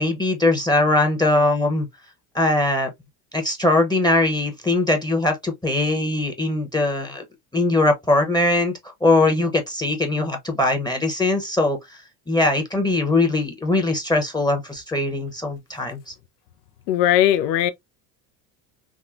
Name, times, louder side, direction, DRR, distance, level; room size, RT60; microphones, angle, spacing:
voice 1, 0.0-1.9 2.3-2.9 3.3-7.2 7.5-8.7 9.0-12.0 12.3-16.1, left 2 dB, 10° left, 0.7 m, -21 dB
voice 2, 16.9-17.7, left 12 dB, 85° left, 0.6 m, -18 dB
3.5 x 2.1 x 2.4 m
hypercardioid pair, 75°, 48 cm